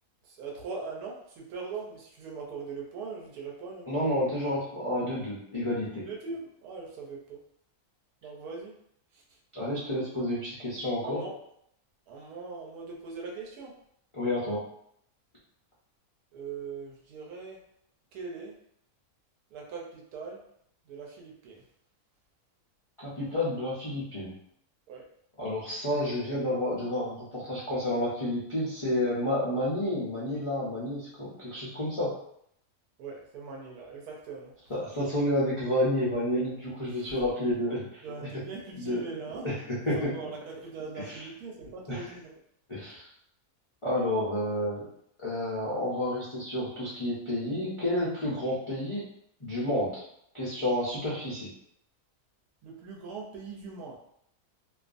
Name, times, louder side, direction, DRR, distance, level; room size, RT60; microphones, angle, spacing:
voice 1, 0.2-3.9 6.0-7.4 8.2-8.7 11.0-11.3 12.1-13.7 16.3-17.6 18.1-18.5 19.5-20.4 20.9-21.6 24.9-25.0 33.0-34.5 36.9-37.1 38.0-39.5 39.9-42.3 52.6-54.0, right 4 dB, 85° right, -1 dB, 1.1 m, -41 dB
voice 2, 3.9-6.0 9.5-11.2 14.1-14.6 23.0-24.3 25.4-32.1 34.7-38.0 38.8-39.0 39.4-39.6 39.9-40.2 40.9-41.3 41.9-42.1 42.7-43.1 43.8-44.8 45.2-49.0 49.4-50.0 50.3-51.5, left 1 dB, 55° left, -9 dB, 0.3 m, -30 dB
2.5 x 2.4 x 2.4 m, 0.71 s
omnidirectional pair, 1.6 m